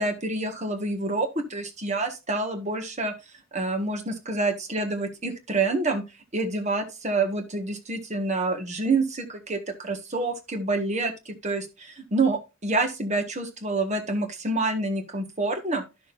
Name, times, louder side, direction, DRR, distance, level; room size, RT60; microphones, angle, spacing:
voice 1, 0.0-3.1 3.5-6.0 6.3-15.8, right 2 dB, 35° right, 6 dB, 1.5 m, -27 dB
12.5 x 6.4 x 2.6 m, 0.26 s
head